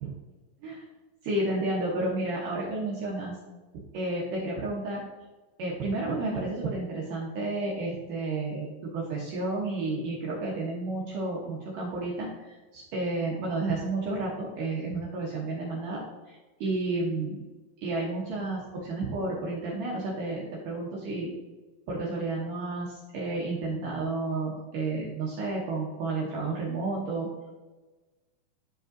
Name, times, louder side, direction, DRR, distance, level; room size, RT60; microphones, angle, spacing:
voice 1, 1.2-3.4 3.9-5.0 5.6-17.4 17.8-21.3 21.9-27.3, right 2 dB, 75° right, -4 dB, 2.0 m, -31 dB
11.0 x 5.1 x 2.6 m, 1.2 s
omnidirectional pair, 5.1 m